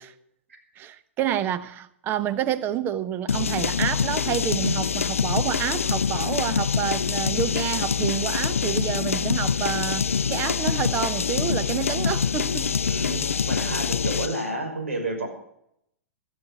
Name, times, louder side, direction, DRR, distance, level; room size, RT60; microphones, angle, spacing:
voice 1, 0.8-12.8, right 10 dB, 30° right, 1.0 m, -28 dB
sound 1, 3.3-14.4, left 6 dB, 75° left, 0.4 m, -25 dB
voice 2, 12.8-15.3, right 2 dB, 70° right, 5.7 m, -30 dB
18.0 x 13.0 x 3.8 m
figure-of-eight pair, 105°, 7 cm